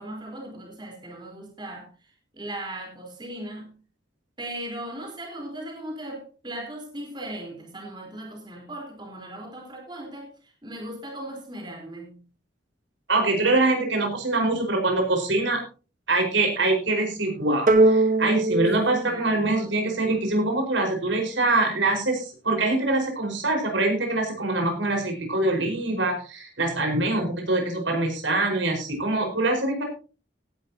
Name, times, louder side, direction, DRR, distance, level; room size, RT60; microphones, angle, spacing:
voice 1, 0.0-1.9 2.3-3.8 4.4-10.3 10.6-12.2 19.0-19.8, right 1 dB, 25° right, 0 dB, 3.9 m, -38 dB
voice 2, 13.1-15.6 16.1-29.8, right 2 dB, 85° right, 2 dB, 4.8 m, -24 dB
sound 1, 17.7-20.3, right 2 dB, 45° right, 1.2 m, -22 dB
17.5 x 11.5 x 2.8 m, 0.35 s
head